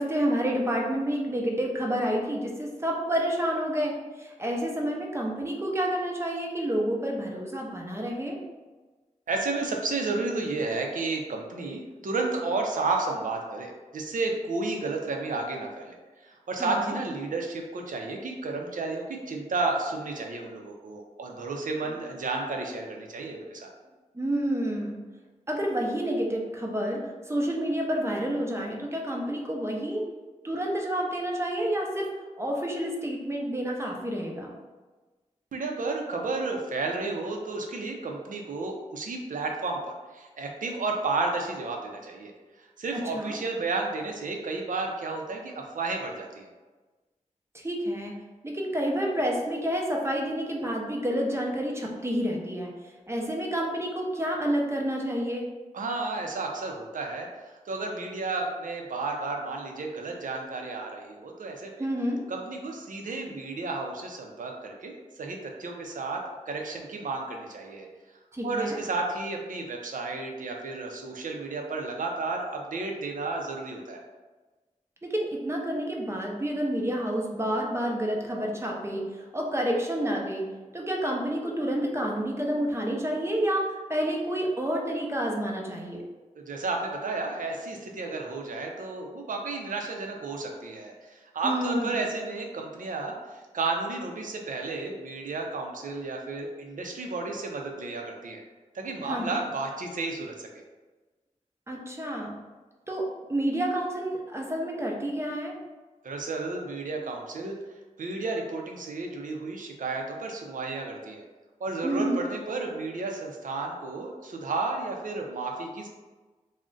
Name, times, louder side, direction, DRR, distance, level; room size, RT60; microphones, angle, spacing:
voice 1, 0.0-8.4 16.6-16.9 24.1-25.0 25.5-30.0 30.4-32.1 32.4-34.5 42.9-43.4 47.5-48.1 48.4-52.7 53.1-55.5 61.8-62.2 68.3-68.8 75.0-79.0 79.3-80.5 80.7-86.0 91.4-91.9 99.0-99.4 101.7-102.3 102.9-105.6 111.8-112.2, equal, 20° right, -1 dB, 0.5 m, -29 dB
voice 2, 9.3-15.9 16.2-23.7 35.5-42.3 42.6-46.5 55.7-61.9 62.3-67.9 68.4-74.0 86.4-98.4 98.7-100.5 106.0-107.5 108.0-111.2 111.6-115.9, right 3 dB, 80° right, 1 dB, 0.5 m, -32 dB
2.4 x 2.1 x 3.7 m, 1.2 s
wide cardioid pair, 75°, 13 cm